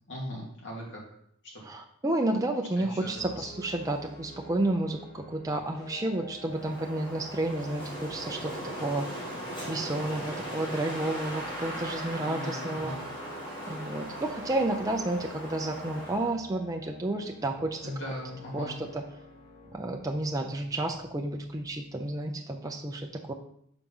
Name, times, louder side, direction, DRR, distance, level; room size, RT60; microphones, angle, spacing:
voice 1, 0.1-1.0 1.5-1.6 2.8-3.5 12.2-13.1 17.8-18.8, equal, 55° left, -3 dB, 2.6 m, -39 dB
voice 2, 1.6-9.1 9.7-12.9 13.7-17.9 18.5-19.0 19.7-23.3, right 2 dB, 15° right, 2 dB, 0.5 m, -31 dB
sound 1, 3.1-22.3, left 2 dB, 90° left, 2.4 m, -49 dB
Wind, 6.5-16.4, equal, 20° left, 2.8 m, -38 dB
5.8 x 5.0 x 5.4 m, 0.69 s
head